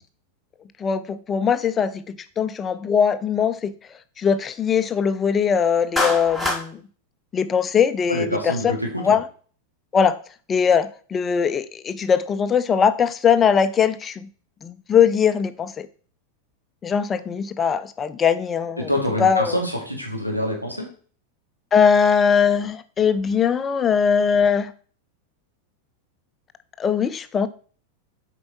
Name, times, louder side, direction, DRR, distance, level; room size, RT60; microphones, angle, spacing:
voice 1, 0.8-3.7 4.2-6.8 7.3-9.2 9.9-10.1 10.5-14.3 14.6-15.9 16.8-18.9 19.2-19.6 21.7-24.7 26.8-27.5, left 7 dB, 20° left, 12 dB, 0.5 m, -20 dB
Clapping, 6.0-6.6, left 1 dB, ahead, 1.5 m, -23 dB
voice 2, 8.1-9.2 18.8-20.9, equal, 90° right, 0 dB, 2.0 m, -26 dB
7.8 x 4.5 x 4.1 m, 0.42 s
figure-of-eight pair, 90°, 0 cm